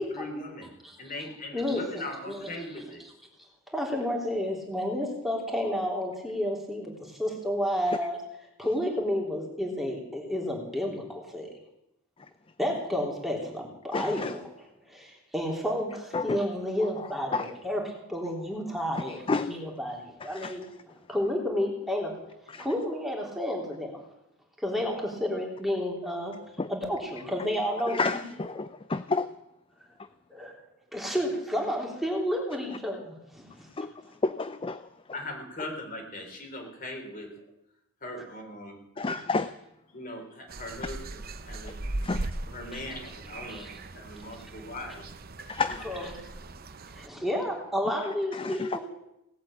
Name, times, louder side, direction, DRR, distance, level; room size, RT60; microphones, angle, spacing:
voice 1, 0.0-0.7 1.0-3.0 35.1-37.5 38.0-38.8 39.9-41.8 42.2-43.7 43.9-45.0 45.7-45.9, left 1 dB, 40° left, 2 dB, 3.7 m, -40 dB
voice 2, 1.5-2.5 3.7-8.2 8.6-11.5 12.6-14.4 14.9-22.1 22.6-24.0 24.6-26.3 26.7-28.0 30.3-30.6 30.9-33.7 34.1-34.2 39.1-39.2 42.7-42.8 43.5-43.7 45.8-46.1 46.9-48.8, equal, ahead, -1 dB, 3.4 m, -31 dB
voice 3, 13.9-14.4 16.1-16.4 17.3-17.5 19.1-19.5 20.2-20.5 22.5-22.7 26.6-26.7 27.9-29.3 33.8-33.9 34.2-34.9 39.0-39.5 42.0-42.3 45.5-45.8 48.3-48.8, left 3 dB, 25° left, 12 dB, 0.5 m, -30 dB
sound 1, 40.5-47.1, right 2 dB, 45° right, 0.8 m, -39 dB
18.0 x 8.5 x 8.8 m, 0.86 s
head